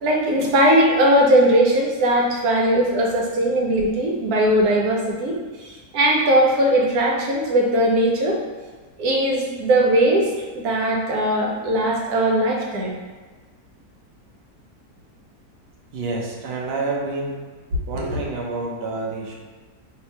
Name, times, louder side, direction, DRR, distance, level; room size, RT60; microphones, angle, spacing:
voice 1, 0.0-5.4 5.6-8.4 9.0-10.3 10.5-12.9, right 1 dB, 80° right, -1 dB, 1.2 m, -19 dB
voice 2, 15.9-17.4 17.9-19.3, right 3 dB, 60° right, -2 dB, 0.7 m, -28 dB
2.8 x 2.5 x 4.2 m, 1.3 s
omnidirectional pair, 1.6 m